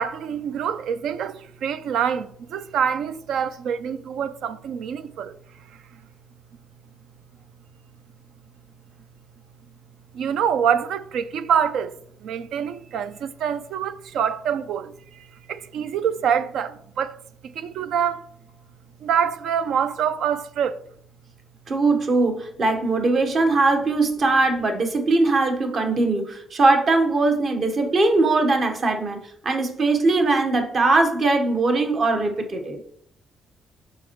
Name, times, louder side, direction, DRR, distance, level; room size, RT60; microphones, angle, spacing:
voice 1, 0.0-5.4 5.7-6.0 10.1-18.3 19.0-20.8, right 8 dB, 75° right, 0.4 m, -26 dB
voice 2, 21.7-32.8, right 3 dB, 50° right, 1.2 m, -21 dB
7.1 x 5.2 x 3.0 m
cardioid pair, 90°, 0 cm